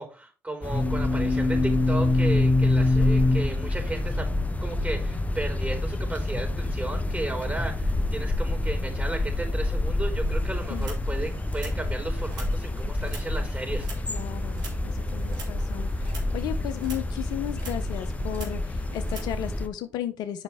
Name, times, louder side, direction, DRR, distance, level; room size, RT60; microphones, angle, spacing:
voice 1, 0.0-4.3 4.6-13.9, right 2 dB, 20° right, 4.5 m, -34 dB
sound 1, 0.6-19.7, left 2 dB, 20° left, 0.9 m, -26 dB
sound 2, 10.2-19.3, right 4 dB, 75° right, 2.7 m, -47 dB
voice 2, 14.1-20.4, left 12 dB, 75° left, 0.7 m, -34 dB
8.1 x 5.7 x 3.5 m
hypercardioid pair, 45°, 7 cm